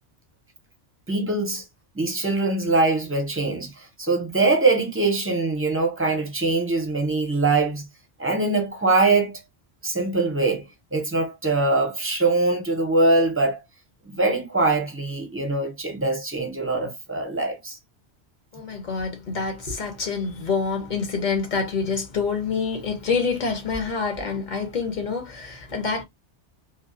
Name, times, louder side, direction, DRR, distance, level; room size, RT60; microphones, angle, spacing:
voice 1, 1.1-1.6 1.9-7.9 8.2-9.4 9.8-13.6 14.1-17.8, right 3 dB, 15° right, 0.4 m, -23 dB
voice 2, 18.5-26.0, left 5 dB, 45° left, 0.7 m, -27 dB
2.2 x 2.2 x 2.5 m
omnidirectional pair, 1.2 m